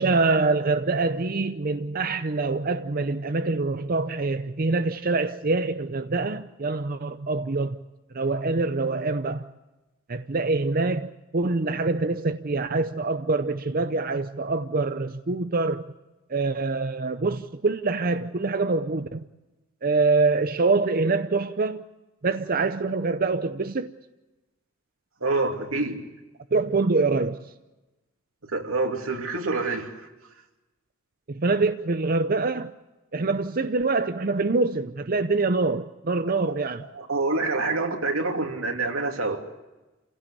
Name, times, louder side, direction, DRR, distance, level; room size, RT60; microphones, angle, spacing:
voice 1, 0.0-7.8 8.1-9.4 10.1-15.9 16.3-19.2 19.8-21.8 22.2-23.9 26.5-27.4 31.3-32.7 33.1-36.8, right 3 dB, 45° right, 0.7 m, -25 dB
voice 2, 25.2-26.0 28.5-30.1 36.4-36.6 36.9-39.4, right 3 dB, 90° right, 3.0 m, -27 dB
27.5 x 16.5 x 8.4 m
head